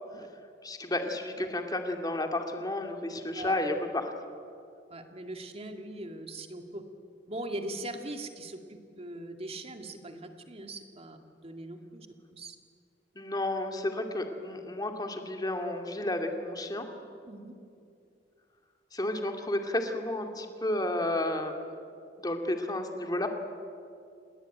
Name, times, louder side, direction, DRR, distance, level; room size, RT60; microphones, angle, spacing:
voice 1, 0.6-4.1 13.2-16.9 18.9-21.5 22.2-23.3, left 1 dB, 20° left, 4 dB, 2.5 m, -32 dB
voice 2, 4.9-6.8 7.3-12.1 12.3-12.6 17.3-17.5, right 1 dB, 35° right, 5 dB, 2.2 m, -41 dB
29.0 x 20.0 x 9.1 m, 2.5 s
head